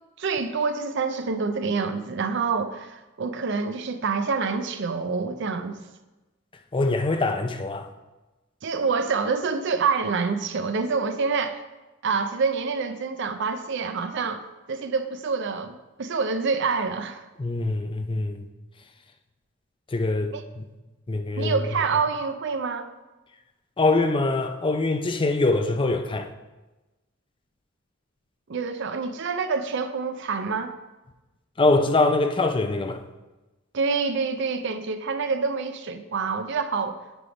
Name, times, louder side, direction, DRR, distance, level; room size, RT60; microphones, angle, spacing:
voice 1, 0.2-5.8 8.6-11.6 12.0-14.4 14.7-17.2 20.3-20.4 21.4-22.9 28.5-30.7 33.7-37.0, right 5 dB, 65° right, 0.5 m, -27 dB
voice 2, 6.7-7.9 17.4-18.5 19.9-20.6 21.1-21.6 23.8-26.3 31.6-33.0, left 2 dB, 25° left, 0.5 m, -23 dB
9.7 x 3.4 x 5.0 m
head